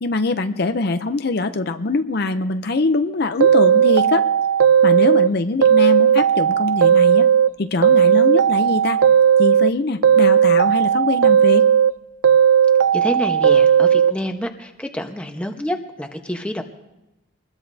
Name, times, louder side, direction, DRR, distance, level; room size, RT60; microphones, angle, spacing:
voice 1, 0.0-4.3 4.8-7.3 7.6-9.0 9.4-11.7, left 3 dB, 55° left, 8 dB, 0.6 m, -23 dB
sound 1, 3.4-5.3 5.6-7.5 7.8-9.7 10.0-11.9 12.2-14.1, right 8 dB, 85° right, 0.5 m, -15 dB
voice 2, 12.9-16.6, equal, 5° left, 4 dB, 1.0 m, -27 dB
24.5 x 20.5 x 2.7 m, 0.95 s
head